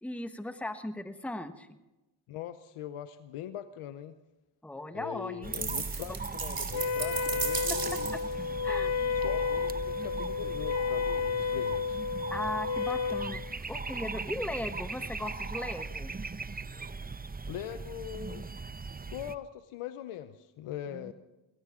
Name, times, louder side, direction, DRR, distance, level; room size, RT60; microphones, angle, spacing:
voice 1, 0.0-1.7 4.6-5.5 6.1-6.2 7.7-7.8 8.1-8.2 8.6-8.9 12.3-16.1 20.9-21.1, left 1 dB, 5° left, 9 dB, 1.3 m, -37 dB
voice 2, 2.3-4.1 4.9-8.2 9.0-12.0 17.5-18.5 19.1-21.1, left 11 dB, 90° left, 12 dB, 0.7 m, -41 dB
sound 1, 5.4-19.3, right 4 dB, 20° right, 0.7 m, -39 dB
sound 2, 5.5-8.3, right 5 dB, 45° right, 2.5 m, -35 dB
Wind instrument woodwind instrument, 6.7-13.3, left 6 dB, 60° left, 1.1 m, -31 dB
21.0 x 17.0 x 3.6 m, 1.0 s
supercardioid pair, 45°, 50 cm